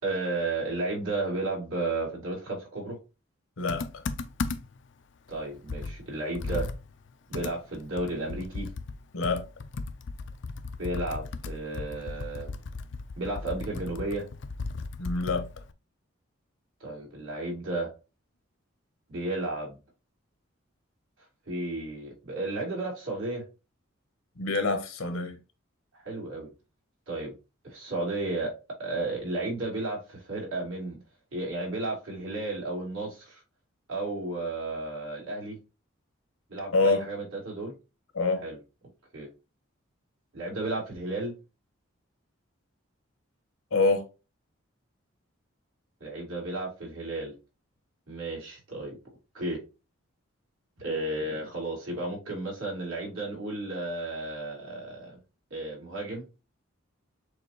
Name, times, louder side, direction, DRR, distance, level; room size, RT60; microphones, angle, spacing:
voice 1, 0.0-3.0 5.3-6.7 7.3-8.7 10.8-12.5 13.2-14.3 16.8-17.9 19.1-19.8 21.5-23.4 25.9-26.5 27.1-27.3 27.6-28.5 28.8-31.0 31.3-33.4 33.9-35.6 36.5-37.7 38.4-38.6 39.1-39.3 40.3-41.3 46.0-47.3 48.1-49.0 49.3-49.6 50.8-55.1 55.5-56.2, right 2 dB, 90° right, 2.7 m, -33 dB
voice 2, 3.6-4.0 9.1-9.4 15.0-15.5 24.4-25.4 36.7-37.0 38.1-38.4 43.7-44.0, left 3 dB, 85° left, 1.0 m, -26 dB
Computer keyboard, 3.7-4.9 5.3-5.4 5.7-9.0 9.2-15.7, left 3 dB, 60° left, 0.5 m, -36 dB
6.8 x 2.7 x 2.8 m
head